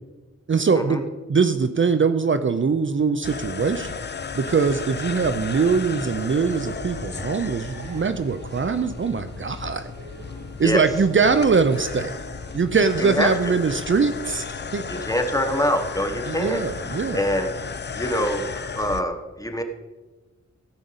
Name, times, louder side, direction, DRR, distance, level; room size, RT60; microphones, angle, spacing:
voice 1, 0.5-1.0 1.3-9.9 10.6-12.2 12.5-15.0 16.3-17.3, right 5 dB, 40° right, 10 dB, 0.6 m, -22 dB
sound 1, 3.2-19.0, left 5 dB, 35° left, 0.6 m, -34 dB
sound 2, 4.5-17.7, right 1 dB, 75° right, 2.5 m, -44 dB
voice 2, 13.0-13.5 14.9-16.6 17.1-17.5 18.0-19.6, equal, 10° left, 6 dB, 1.3 m, -25 dB
15.5 x 5.3 x 7.9 m, 1.2 s
wide cardioid pair, 105°, 29 cm